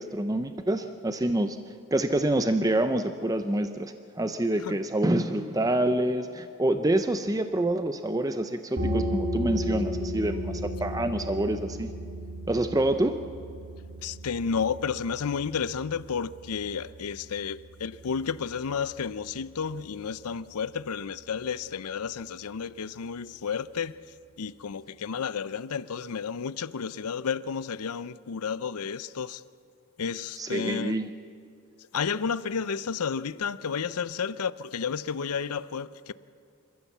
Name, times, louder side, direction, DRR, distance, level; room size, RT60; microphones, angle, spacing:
voice 1, 0.0-1.6 1.9-11.9 12.5-13.2 30.4-31.1, right 1 dB, 15° right, 0.5 m, -27 dB
sound 1, 8.8-20.1, equal, 45° right, 2.4 m, -35 dB
voice 2, 14.0-23.9 24.4-29.4 30.0-31.0 31.9-36.1, left 6 dB, 85° left, 0.6 m, -32 dB
27.0 x 14.5 x 7.2 m
head